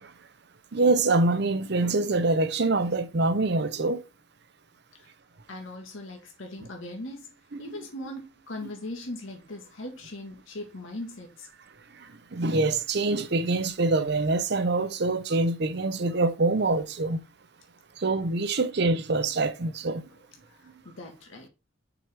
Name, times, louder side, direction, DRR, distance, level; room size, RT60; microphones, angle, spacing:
voice 1, 0.7-4.0 7.5-7.6 12.3-17.2 18.0-20.0, right 3 dB, 55° right, 0.7 m, -25 dB
voice 2, 5.5-11.5 20.4-21.5, left 1 dB, 80° left, 1.6 m, -40 dB
6.1 x 4.9 x 3.4 m
head